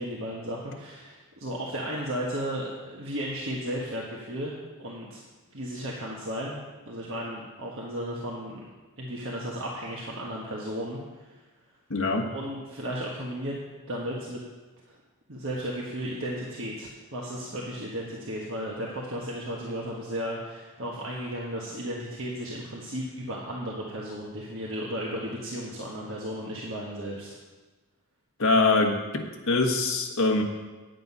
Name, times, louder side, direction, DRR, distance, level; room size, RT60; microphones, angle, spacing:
voice 1, 0.0-4.5 4.8-5.2 5.5-6.6 6.8-8.6 9.0-11.4 12.3-13.6 13.9-14.4 14.9-15.0 15.3-27.4, equal, 60° right, -4 dB, 1.4 m, -34 dB
voice 2, 11.9-12.3 28.4-30.4, left 3 dB, 70° left, 2 dB, 1.4 m, -24 dB
9.2 x 7.8 x 5.5 m, 1.2 s
head